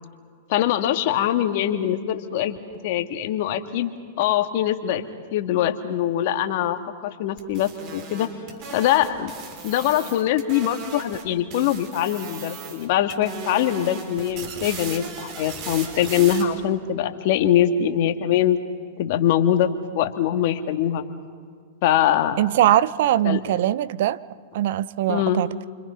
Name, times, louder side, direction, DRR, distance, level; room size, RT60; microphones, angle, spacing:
voice 1, 0.5-2.6 2.8-5.0 5.3-8.3 8.7-9.3 9.6-18.6 19.0-21.0 21.8-22.4 23.2-23.6 25.1-25.4, left 11 dB, 60° left, 1.9 m, -23 dB
sound 1, 7.4-11.2 11.5-12.9 13.1-16.4, right 5 dB, 45° right, 6.1 m, -37 dB
voice 2, 22.4-24.2 24.5-25.5, right 12 dB, 65° right, 0.7 m, -21 dB
29.5 x 25.5 x 5.7 m
hypercardioid pair, 110°, 0 cm